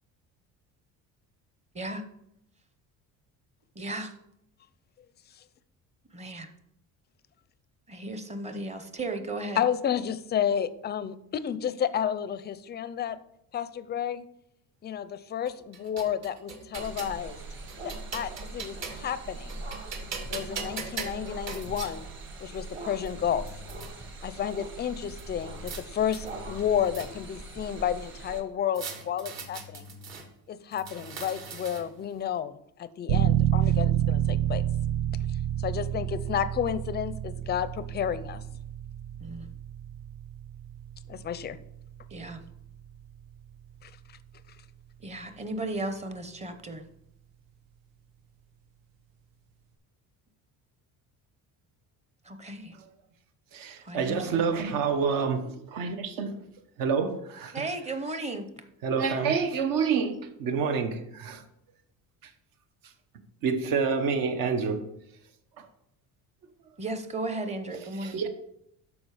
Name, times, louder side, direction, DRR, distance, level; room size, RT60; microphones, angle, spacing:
voice 1, 3.8-4.1 6.1-6.5 7.9-9.6 39.2-39.5 42.1-42.4 45.0-46.8 52.2-52.7 53.8-54.5 57.5-58.5 66.8-68.2, right 2 dB, 20° right, 0.9 m, -35 dB
voice 2, 9.6-13.2 13.5-14.2 14.8-17.4 17.8-19.6 20.3-22.1 22.4-23.5 24.2-29.9 30.5-34.6 35.6-38.4 41.1-41.6 43.8-43.9, left 9 dB, 30° left, 0.4 m, -31 dB
sound 1, 15.5-17.2 17.7-19.1 19.5-21.9 22.7-22.8 23.1-23.9 25.2-25.8 26.1-27.4 28.7-30.2 30.7-32.0, right 4 dB, 50° right, 1.7 m, -40 dB
sound 2, 16.7-28.4, right 3 dB, 35° right, 1.6 m, -42 dB
sound 3, 33.1-43.6, right 11 dB, 85° right, 1.0 m, -29 dB
voice 3, 53.5-56.3 56.8-57.6 58.8-61.4 63.4-64.8 68.0-68.3, right 5 dB, 70° right, 1.3 m, -28 dB
12.5 x 4.9 x 4.9 m
cardioid pair, 160°, 35 cm